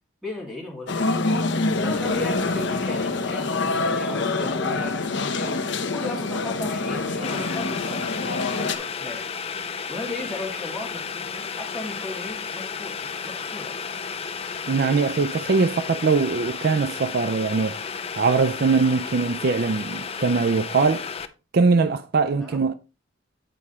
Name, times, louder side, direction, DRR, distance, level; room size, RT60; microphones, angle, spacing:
voice 1, 0.2-1.4 1.8-5.5 5.9-9.2 9.9-13.7 22.4-22.6, left 2 dB, ahead, 2.8 m, -36 dB
sound 1, 0.9-8.8, left 3 dB, 65° left, 0.8 m, -26 dB
Boiling, 7.2-21.3, left 6 dB, 30° left, 0.5 m, -33 dB
voice 2, 14.7-17.8 18.2-21.1 21.5-22.7, right 4 dB, 50° right, 0.4 m, -21 dB
9.2 x 4.8 x 4.2 m
head